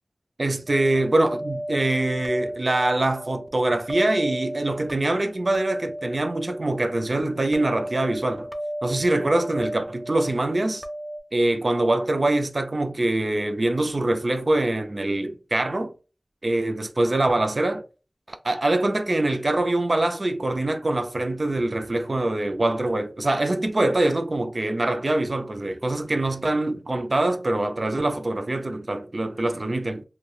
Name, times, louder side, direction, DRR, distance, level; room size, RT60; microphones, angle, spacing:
voice 1, 0.4-8.5 8.8-10.8 11.3-15.9 16.4-17.8 18.3-30.0, right 2 dB, 55° right, 0.4 m, -24 dB
sound 1, 0.7-11.2, right 1 dB, ahead, 0.5 m, -34 dB
3.2 x 2.2 x 2.3 m
wide cardioid pair, 55°, 0 cm